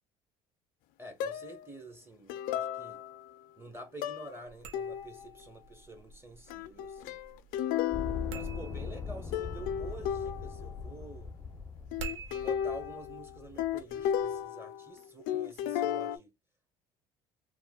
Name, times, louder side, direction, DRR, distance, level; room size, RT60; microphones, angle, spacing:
voice 1, 1.0-3.0 3.6-7.2 8.3-11.4 12.3-16.3, right 1 dB, 15° right, 1.0 m, -48 dB
sound 1, 1.2-1.7 2.3-3.3 4.0-4.4 4.7-5.3 6.5-9.1 9.3-10.7 11.9-15.0 15.3-16.2, left 10 dB, 75° left, 0.4 m, -34 dB
sound 2, 4.4-14.2, right 5 dB, 90° right, 0.6 m, -50 dB
sound 3, 7.9-14.2, left 5 dB, 20° left, 0.6 m, -41 dB
3.0 x 2.1 x 2.3 m
supercardioid pair, 85°, 15 cm